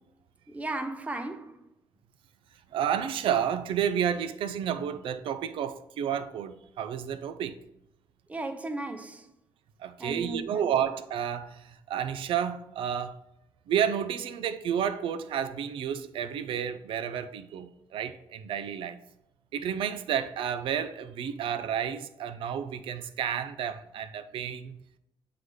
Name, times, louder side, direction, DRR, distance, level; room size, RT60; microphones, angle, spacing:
voice 1, 0.5-1.6 8.3-9.3 10.0-10.7, right 2 dB, 15° right, 0.6 m, -35 dB
voice 2, 2.7-7.6 9.8-13.2 13.7-19.0 19.5-24.8, right 8 dB, 80° right, 0.4 m, -31 dB
7.7 x 3.8 x 3.2 m
cardioid pair, 125°, 9 cm